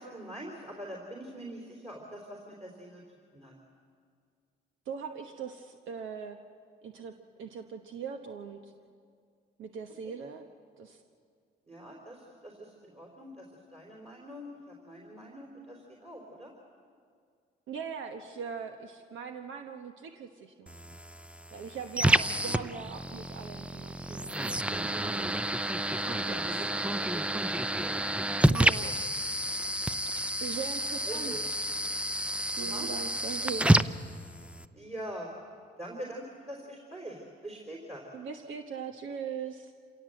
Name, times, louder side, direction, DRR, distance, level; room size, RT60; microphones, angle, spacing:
voice 1, 0.0-3.0 3.3-3.5 10.0-10.2 11.7-13.5 13.7-16.5 22.1-22.3 22.5-22.7 26.4-28.0 28.5-28.9 31.1-31.4 32.6-32.9 34.7-35.3 35.8-38.0, right 1 dB, 30° right, -2 dB, 3.9 m, -44 dB
voice 2, 4.9-6.4 6.8-7.1 7.4-8.7 9.6-10.4 10.8-11.0 17.7-20.7 21.5-25.3 26.0-26.6 28.5-28.9 30.4-31.3 32.6-33.9 38.1-39.7, right 6 dB, 75° right, 5 dB, 1.2 m, -40 dB
sound 1, 20.7-34.7, right 1 dB, 5° right, 0.5 m, -29 dB
27.5 x 17.0 x 7.8 m, 2.1 s
cardioid pair, 90°, 20 cm